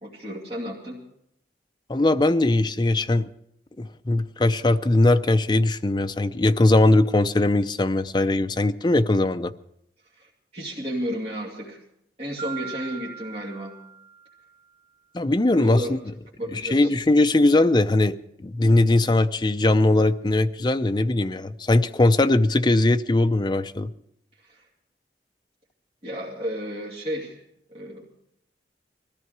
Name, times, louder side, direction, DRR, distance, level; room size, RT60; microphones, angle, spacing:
voice 1, 0.0-1.0 10.1-11.8 12.2-13.7 15.5-15.9 16.4-16.9 24.4-24.7 26.0-27.4 27.7-28.0, equal, 35° right, -5 dB, 2.6 m, -33 dB
voice 2, 1.9-3.3 3.8-9.5 15.1-16.0 16.5-18.2 18.4-23.9, left 2 dB, 25° left, 9 dB, 0.5 m, -20 dB
Marimba xylophone, 12.4-14.6, right 7 dB, 65° right, 2.1 m, -39 dB
20.0 x 14.0 x 4.7 m, 0.75 s
head